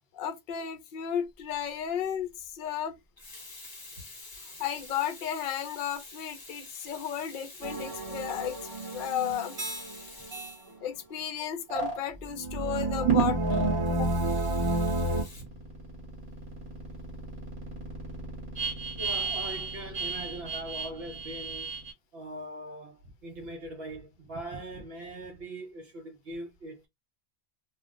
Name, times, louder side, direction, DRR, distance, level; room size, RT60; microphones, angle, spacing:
voice 1, 0.1-3.0 4.6-8.6 8.8-9.6 10.8-14.1, left 9 dB, 60° left, 0.7 m, -34 dB
Water tap faucet / Sink (filling or washing), 1.4-1.6 3.0-11.2 13.8-15.4, left 2 dB, 25° left, 0.6 m, -48 dB
sound 1, 7.6-10.4 12.2-15.2, right 1 dB, 35° right, 0.9 m, -31 dB
sound 2, 9.6-10.0 10.3-10.6 11.7-12.0 13.0-13.9 14.4-21.9, right 5 dB, 55° right, 1.2 m, -33 dB
voice 2, 19.0-21.7 22.1-26.9, right 1 dB, 70° right, 0.9 m, -41 dB
2.4 x 2.0 x 3.4 m
omnidirectional pair, 1.1 m